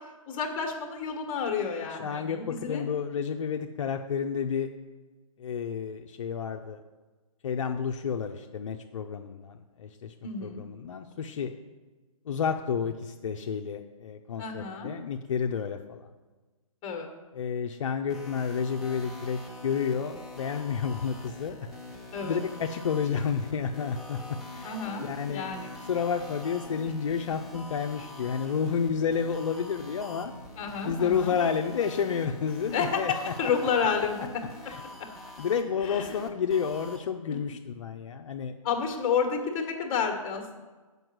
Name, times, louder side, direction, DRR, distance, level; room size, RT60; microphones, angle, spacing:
voice 1, 0.3-2.8 10.2-10.6 14.4-14.9 16.8-17.1 22.1-22.4 24.6-25.7 30.6-31.4 32.7-34.3 35.8-36.2 37.3-37.4 38.6-40.6, left 6 dB, 25° left, 3 dB, 1.4 m, -30 dB
voice 2, 1.9-4.7 5.4-6.8 7.4-10.1 10.4-11.5 12.3-16.1 17.3-21.7 22.2-24.2 24.5-25.5 25.9-30.3 30.8-33.3 34.7-34.8 35.4-38.5, left 6 dB, 60° left, 4 dB, 0.6 m, -30 dB
sound 1, 18.1-37.0, left 1 dB, ahead, 0.8 m, -44 dB
7.8 x 5.4 x 6.1 m, 1.3 s
hypercardioid pair, 145°, 18 cm